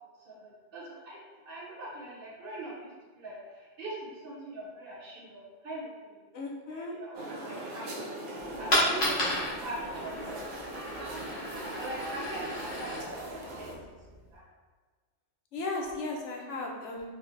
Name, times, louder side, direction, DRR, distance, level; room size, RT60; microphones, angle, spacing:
voice 1, 0.2-2.9 3.2-6.2 6.7-11.1 11.8-14.0 14.3-14.5, right 1 dB, 55° right, -5 dB, 1.0 m, -42 dB
voice 2, 6.3-6.9 15.5-17.1, left 2 dB, 85° left, -1 dB, 0.9 m, -36 dB
sound 1, 7.1-13.7, right 1 dB, 80° right, 0.9 m, -40 dB
Coin (dropping), 8.4-14.4, equal, 50° left, 1.1 m, -33 dB
4.3 x 2.1 x 2.6 m, 1.4 s
omnidirectional pair, 1.2 m